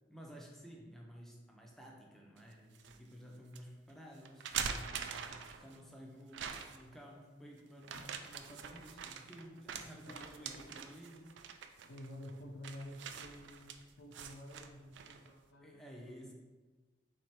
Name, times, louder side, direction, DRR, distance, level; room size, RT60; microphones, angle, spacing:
voice 1, 0.1-11.6 15.6-16.3, equal, ahead, -1 dB, 0.5 m, -53 dB
sound 1, 2.4-3.0 3.5-3.6 4.3-5.8 6.3-6.9 7.8-15.3, right 7 dB, 75° right, 0.3 m, -44 dB
voice 2, 9.9-10.7 11.8-16.2, left 1 dB, 90° left, -2 dB, 0.5 m, -51 dB
3.8 x 3.2 x 4.3 m, 1.3 s
head